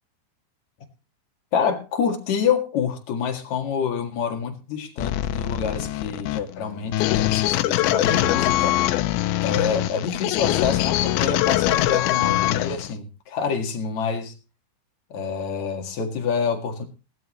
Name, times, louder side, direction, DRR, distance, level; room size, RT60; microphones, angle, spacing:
voice 1, 1.5-8.8 9.4-14.3 15.1-16.9, left 6 dB, 50° left, 3 dB, 2.6 m, -27 dB
sound 1, 5.0-12.9, left 15 dB, 90° left, 3.1 m, -23 dB
18.5 x 12.0 x 3.1 m, 0.32 s
omnidirectional pair, 5.1 m